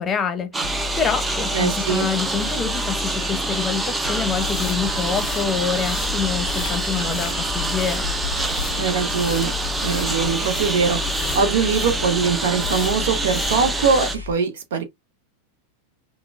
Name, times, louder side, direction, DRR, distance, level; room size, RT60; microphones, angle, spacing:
voice 1, 0.0-8.1, left 6 dB, 20° left, 0.9 m, -26 dB
Engine, 0.5-14.2, right 2 dB, 10° right, 0.5 m, -26 dB
sound 1, 0.6-14.3, left 5 dB, 80° right, 1.1 m, -33 dB
voice 2, 1.5-2.1 8.7-9.5 9.8-14.8, right 5 dB, 60° right, 0.7 m, -22 dB
sound 2, 4.3-13.9, left 7 dB, 45° left, 0.4 m, -34 dB
5.8 x 2.1 x 2.3 m
figure-of-eight pair, 90°, 0 cm